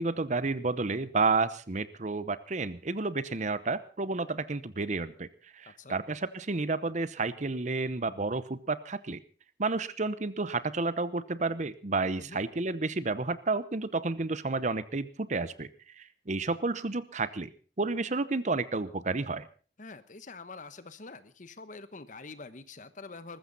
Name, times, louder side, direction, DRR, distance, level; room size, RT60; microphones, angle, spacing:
voice 1, 0.0-5.3 5.6-9.2 9.6-15.7 16.0-17.5 17.8-19.5, right 3 dB, 40° right, 15 dB, 0.9 m, -31 dB
voice 2, 19.8-23.4, left 3 dB, 45° left, 13 dB, 1.1 m, -46 dB
20.0 x 14.5 x 4.0 m, 0.38 s
head